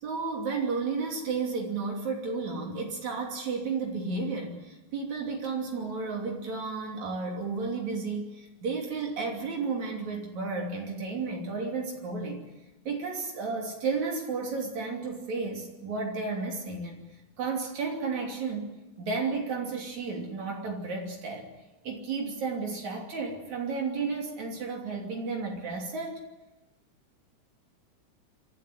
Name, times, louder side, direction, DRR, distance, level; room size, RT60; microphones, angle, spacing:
voice 1, 0.0-12.4 12.9-17.0 17.4-18.7 19.0-21.5 21.8-26.3, right 4 dB, 65° right, 1 dB, 4.3 m, -32 dB
25.5 x 13.0 x 9.3 m, 1.0 s
omnidirectional pair, 3.6 m